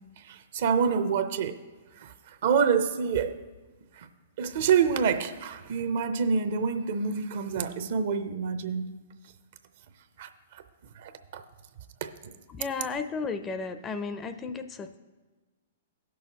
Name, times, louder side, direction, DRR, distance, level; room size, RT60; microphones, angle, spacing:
voice 1, 0.2-1.6 2.0-3.4 4.0-4.1 4.4-8.9 10.2-10.6 11.0-11.4 12.0-12.1, right 6 dB, 60° right, 10 dB, 0.6 m, -27 dB
voice 2, 12.5-15.0, left 4 dB, 20° left, 10 dB, 0.4 m, -34 dB
16.5 x 6.3 x 2.9 m, 1.2 s
hypercardioid pair, 125°, 0 cm